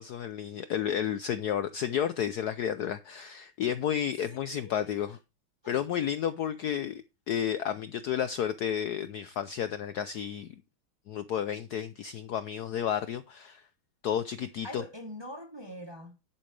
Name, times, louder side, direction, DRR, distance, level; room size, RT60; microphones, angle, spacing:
voice 1, 0.0-5.2 5.7-10.6 11.1-13.6 14.0-14.8, left 9 dB, 70° left, 1.0 m, -32 dB
voice 2, 4.3-5.2 5.6-5.8 14.6-16.2, equal, 15° right, 1.2 m, -44 dB
10.5 x 8.9 x 3.3 m
omnidirectional pair, 2.2 m